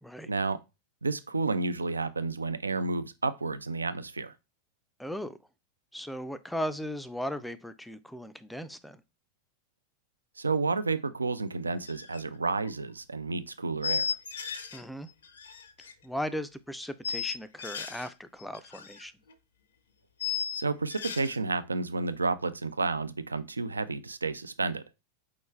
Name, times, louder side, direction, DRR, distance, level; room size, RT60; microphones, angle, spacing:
voice 1, 0.3-0.6 1.0-4.3 10.4-14.1 20.5-24.8, right 3 dB, 80° right, 0.3 m, -31 dB
voice 2, 5.0-5.4 5.9-9.0 14.7-15.1 16.0-19.1, equal, ahead, 0.3 m, -37 dB
sound 1, 11.9-12.2 12.5-12.7 13.8-14.8 15.1-15.9 16.8-18.1 18.4-19.0 19.3-19.4 20.2-21.4, left 6 dB, 65° left, 0.5 m, -35 dB
4.7 x 3.1 x 3.2 m
figure-of-eight pair, 90°, 0 cm